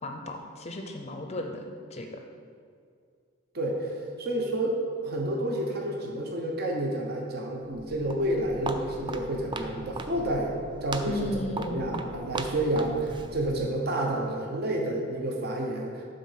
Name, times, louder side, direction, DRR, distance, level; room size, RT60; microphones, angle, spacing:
voice 1, 0.0-2.2 11.1-12.1, left 1 dB, 35° left, 3 dB, 0.5 m, -35 dB
voice 2, 3.5-3.9 4.2-10.6 10.8-11.3 11.6-16.0, right 1 dB, 50° right, 0 dB, 0.9 m, -29 dB
Walk footsteps, 7.6-13.8, right 2 dB, 25° right, 0.3 m, -38 dB
7.5 x 3.9 x 5.6 m, 2.2 s
head